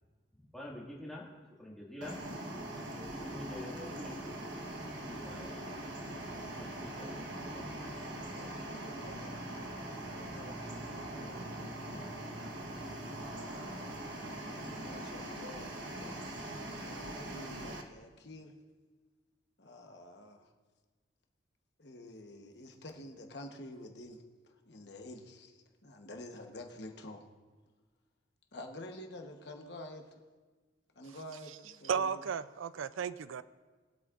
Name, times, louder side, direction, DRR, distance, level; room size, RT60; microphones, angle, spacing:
voice 1, 0.5-1.3 1.6-2.2 2.9-4.3 5.0-5.6 6.5-7.1 7.5-7.8, left 1 dB, ahead, -5 dB, 1.9 m, -46 dB
sound 1, 2.0-17.8, right 1 dB, 70° right, 1.2 m, -42 dB
voice 2, 8.2-9.6 10.0-12.1 13.2-14.0 14.4-15.7 16.0-18.5 19.6-20.5 21.8-24.2 24.7-27.2 28.5-30.0 31.0-32.2, left 1 dB, 55° left, 3 dB, 1.1 m, -49 dB
voice 3, 31.8-33.4, right 6 dB, 90° right, 15 dB, 0.4 m, -34 dB
22.0 x 8.4 x 2.5 m, 1.3 s
head